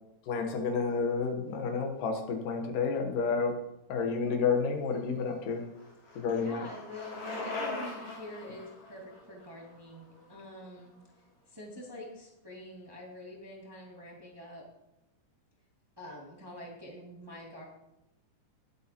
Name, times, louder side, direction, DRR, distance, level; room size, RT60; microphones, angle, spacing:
voice 1, 0.3-3.6 3.9-5.6 6.2-6.7, left 5 dB, 75° left, 4 dB, 2.8 m, -30 dB
Bicycle, 5.0-10.9, left 2 dB, 55° left, 4.2 m, -42 dB
voice 2, 6.2-11.0 11.5-14.6 16.0-17.6, left 1 dB, 10° right, -4 dB, 1.8 m, -46 dB
20.0 x 8.1 x 3.0 m, 0.88 s
omnidirectional pair, 3.9 m